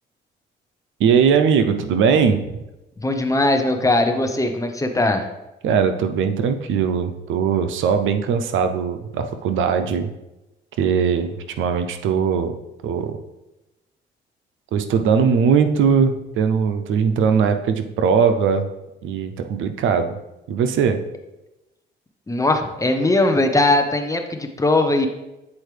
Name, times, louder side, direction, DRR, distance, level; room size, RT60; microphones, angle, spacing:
voice 1, 1.0-2.6 5.6-10.1 10.8-12.5 12.8-13.1 14.7-18.7 19.0-20.2 20.5-21.0, right 6 dB, 80° right, 8 dB, 0.6 m, -20 dB
voice 2, 3.0-5.3 22.3-25.1, left 2 dB, 15° left, 6 dB, 0.8 m, -19 dB
8.3 x 4.4 x 3.3 m, 0.96 s
cardioid pair, 90°, 20 cm